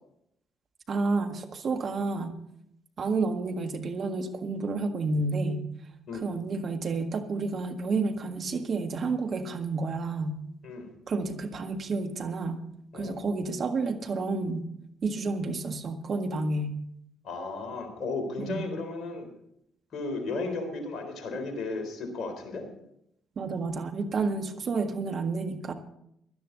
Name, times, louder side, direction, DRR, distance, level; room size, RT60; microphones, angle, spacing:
voice 1, 0.9-2.4 3.0-5.7 6.1-10.4 11.1-12.6 12.9-14.7 15.0-16.8 18.4-18.7 23.3-25.7, right 3 dB, 50° right, 6 dB, 1.7 m, -30 dB
voice 2, 17.2-19.3 19.9-22.7, left 3 dB, 55° left, 5 dB, 3.9 m, -34 dB
17.5 x 12.5 x 4.0 m, 0.76 s
hypercardioid pair, 50°, 0 cm